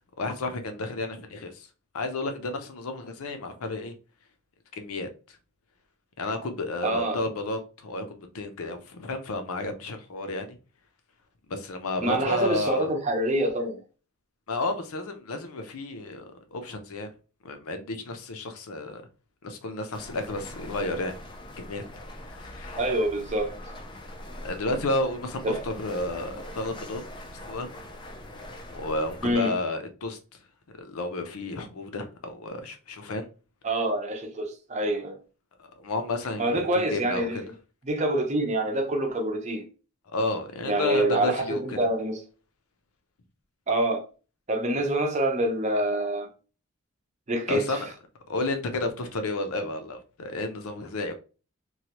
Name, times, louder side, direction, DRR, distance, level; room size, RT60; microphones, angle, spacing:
voice 1, 0.2-1.7 1.9-3.9 4.8-5.4 6.2-10.6 11.5-12.9 14.5-17.1 17.4-19.0 19.4-21.1 21.6-21.8 22.2-22.8 24.4-27.0 27.5-27.7 28.7-30.2 30.8-33.2 35.8-37.4 40.1-41.8 47.5-47.9 48.3-51.1, left 2 dB, 90° left, 0.6 m, -32 dB
voice 2, 6.8-7.2 12.0-13.8 22.8-23.5 25.4-25.6 29.2-29.5 33.6-35.2 36.4-37.4 37.9-39.7 40.7-42.2 43.7-44.0 44.5-46.3 47.3-47.8, right 1 dB, 30° right, 0.6 m, -26 dB
quarry sabe splav diving swimming, 19.9-29.3, left 1 dB, 20° left, 0.4 m, -42 dB
3.1 x 2.2 x 2.8 m
head